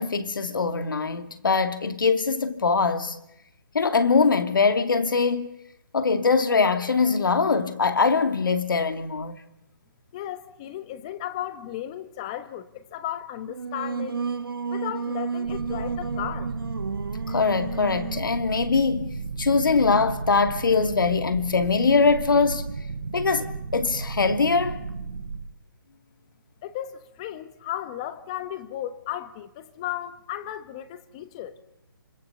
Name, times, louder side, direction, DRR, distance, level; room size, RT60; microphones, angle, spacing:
voice 1, 0.0-3.2 3.7-5.5 5.9-9.4 17.3-22.6 23.1-24.8, left 4 dB, 70° left, 2.5 m, -22 dB
voice 2, 10.1-14.2 14.7-16.5 26.6-31.6, left 12 dB, 15° left, 1.1 m, -35 dB
Singing, 13.5-18.3, right 5 dB, 90° right, 1.6 m, -32 dB
sound 1, 15.4-25.5, right 4 dB, 70° right, 4.1 m, -34 dB
26.5 x 26.0 x 6.9 m
hypercardioid pair, 170°, 11 cm